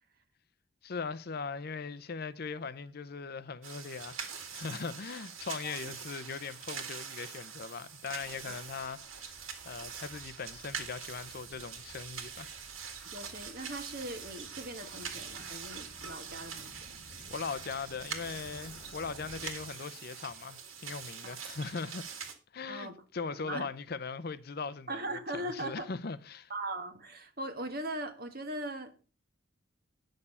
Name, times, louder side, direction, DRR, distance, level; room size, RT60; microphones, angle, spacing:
voice 1, 0.8-9.4 9.6-12.6 17.3-22.0 22.5-25.0 25.3-26.5, left 5 dB, 50° left, 0.6 m, -40 dB
sound 1, 3.6-22.3, right 7 dB, 75° right, 2.0 m, -44 dB
voice 2, 5.6-5.9 8.4-8.5 13.0-17.0 21.2-21.4 22.7-23.0 23.3-23.7 24.9-25.9 26.5-29.1, right 1 dB, 45° right, 1.6 m, -40 dB
sound 2, 8.1-19.5, left 1 dB, 70° left, 3.8 m, -57 dB
sound 3, 17.1-22.2, left 1 dB, 10° left, 4.6 m, -64 dB
9.9 x 6.5 x 5.5 m
head